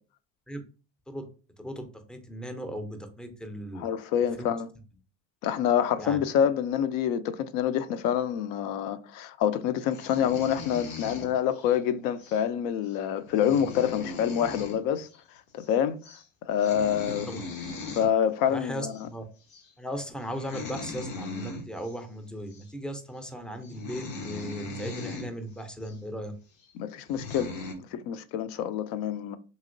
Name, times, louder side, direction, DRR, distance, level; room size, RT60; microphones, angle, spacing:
voice 1, 1.6-3.8 4.4-4.5 6.0-6.2 17.1-17.4 18.5-19.2 19.8-26.3, equal, ahead, 0.5 m, -37 dB
voice 2, 3.8-4.7 5.4-15.1 15.5-16.0 16.5-17.3 17.9-18.9 26.8-27.5 27.9-29.4, left 9 dB, 60° left, 0.5 m, -27 dB
sound 1, 9.9-11.8 12.2-12.4 12.9-13.0 13.2-14.8 15.0-15.2 15.5-15.8 16.0-16.2 16.6-18.1 18.9-19.0 19.5-19.7 20.2-22.0 22.5-22.7 23.3-23.4 23.6-25.3 25.8-25.9 26.6-26.7 27.1-27.7, left 3 dB, 85° left, 0.9 m, -39 dB
2.9 x 2.7 x 2.6 m
supercardioid pair, 90°, 39 cm